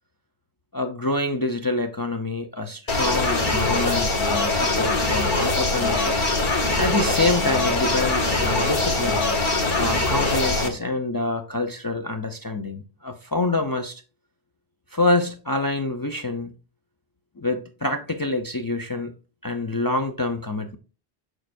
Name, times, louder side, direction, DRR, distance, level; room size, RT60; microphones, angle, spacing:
voice 1, 0.7-6.1 6.8-9.2 9.8-14.0 14.9-16.5 17.4-19.1 19.4-20.8, left 2 dB, 35° left, 0.3 m, -26 dB
sound 1, 2.9-10.7, left 2 dB, 50° left, 1.2 m, -22 dB
6.4 x 6.2 x 2.6 m
omnidirectional pair, 1.1 m